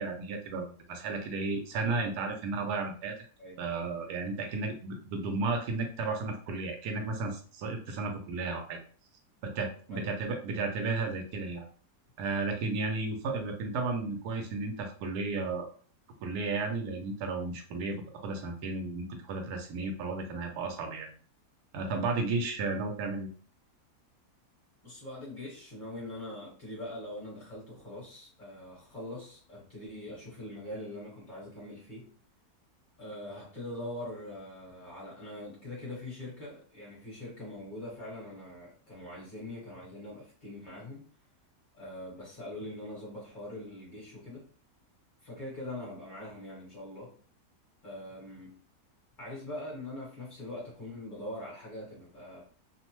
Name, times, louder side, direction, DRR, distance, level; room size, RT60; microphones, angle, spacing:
voice 1, 0.0-3.1 3.6-8.8 9.4-11.7 12.2-15.7 16.2-21.1 21.7-23.3, right 3 dB, 80° right, 4 dB, 1.1 m, -33 dB
voice 2, 24.8-32.1 33.0-41.1 41.7-44.4 45.2-47.1 47.8-48.6 49.2-52.4, left 1 dB, 35° left, -5 dB, 1.1 m, -42 dB
2.8 x 2.0 x 2.9 m, 0.43 s
omnidirectional pair, 1.6 m